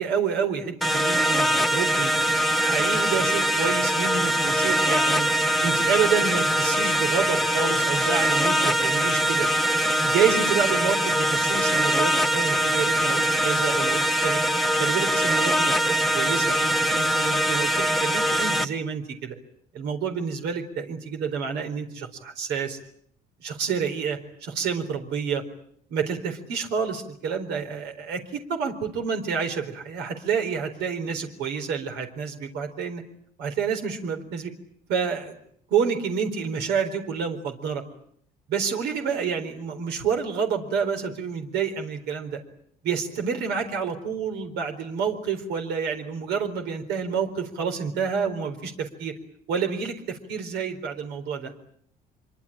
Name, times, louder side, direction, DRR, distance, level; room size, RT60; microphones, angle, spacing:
voice 1, 0.0-2.1 2.6-5.3 5.6-9.5 10.0-14.4 14.8-19.4 19.7-22.8 23.4-25.4 25.9-33.0 33.4-34.5 34.9-35.4 35.7-37.8 38.5-42.4 42.8-49.1 49.5-51.5, right 6 dB, 85° right, 5 dB, 4.1 m, -28 dB
sound 1, 0.8-18.7, right 1 dB, ahead, 1.1 m, -22 dB
25.0 x 24.0 x 8.8 m, 0.67 s
cardioid pair, 110°, 17 cm